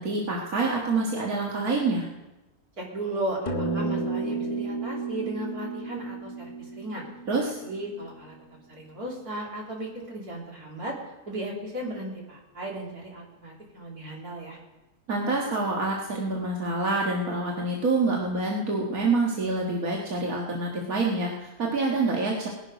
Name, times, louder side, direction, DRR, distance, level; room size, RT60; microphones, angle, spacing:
voice 1, 0.0-2.1 7.3-7.6 15.1-22.5, right 3 dB, 70° right, -2 dB, 2.1 m, -26 dB
voice 2, 2.8-6.5 6.8-7.1 7.4-8.3 8.7-11.0 11.3-14.6, right 1 dB, 90° right, -3 dB, 3.8 m, -35 dB
sound 1, 3.5-8.1, right 3 dB, 30° left, 1.2 m, -32 dB
19.0 x 11.0 x 5.1 m, 1.0 s
omnidirectional pair, 1.5 m